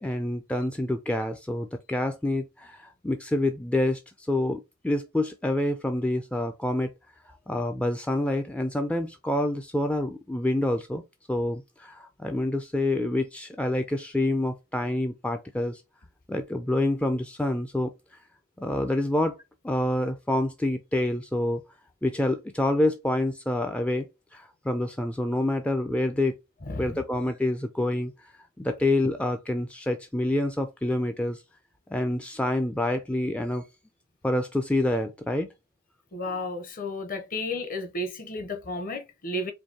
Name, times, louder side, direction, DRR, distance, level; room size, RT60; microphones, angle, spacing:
voice 1, 0.0-6.9 7.5-11.0 11.3-15.8 16.3-17.9 18.6-19.4 19.6-21.6 22.0-24.1 24.3-26.4 26.8-28.3 28.6-31.4 31.9-33.6 34.2-35.5, left 1 dB, 5° left, 0.3 m, -27 dB
voice 2, 26.7-27.0 36.1-39.5, left 2 dB, 40° left, 0.8 m, -33 dB
4.5 x 2.6 x 2.8 m
head